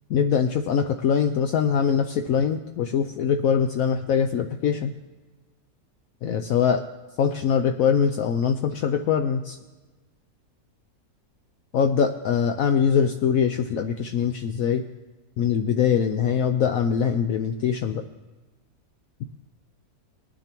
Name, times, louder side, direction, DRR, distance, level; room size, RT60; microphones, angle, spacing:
voice 1, 0.1-4.9 6.2-6.8 7.2-9.6 11.7-14.8 15.4-18.0, left 7 dB, 70° left, 6 dB, 0.9 m, -23 dB
20.0 x 10.0 x 3.0 m, 1.2 s
omnidirectional pair, 1.7 m